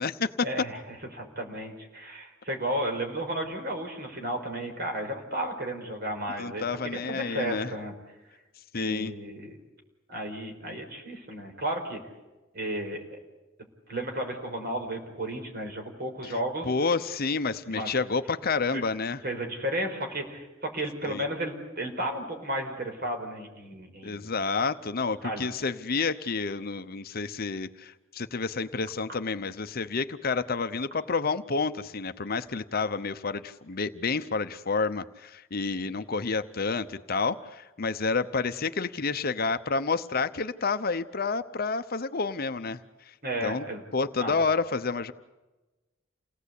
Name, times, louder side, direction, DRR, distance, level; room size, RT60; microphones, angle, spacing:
voice 1, 0.4-7.9 8.7-9.6 10.1-12.0 12.5-13.2 13.9-16.7 17.7-17.9 18.7-18.8 19.2-24.3 25.2-25.5 43.2-43.8 44.2-44.4, right 1 dB, 50° right, 3 dB, 5.0 m, -33 dB
voice 2, 6.4-7.7 8.7-9.1 16.6-19.2 21.1-21.2 24.0-42.8 43.4-43.6 43.9-45.1, left 4 dB, 50° left, 11 dB, 0.8 m, -29 dB
29.0 x 18.0 x 8.4 m, 1.1 s
head